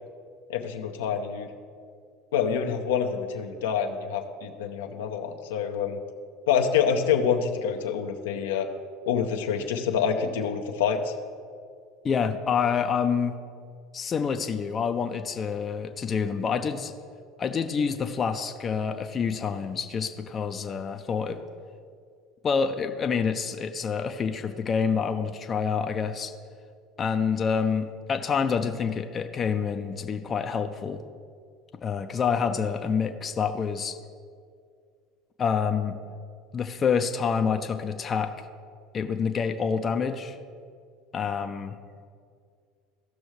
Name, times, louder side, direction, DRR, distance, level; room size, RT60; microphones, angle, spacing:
voice 1, 0.5-1.5 2.3-6.0 6.5-8.7 9.1-11.1, left 7 dB, 80° left, 4 dB, 0.7 m, -26 dB
voice 2, 12.0-13.3 13.9-16.9 17.4-21.4 22.4-26.3 27.0-31.0 31.8-33.9 35.4-36.0 36.5-38.3 38.9-40.4 41.1-41.8, left 6 dB, 35° left, 7 dB, 0.6 m, -27 dB
15.5 x 6.2 x 3.2 m, 2.2 s
hypercardioid pair, 75°, 0 cm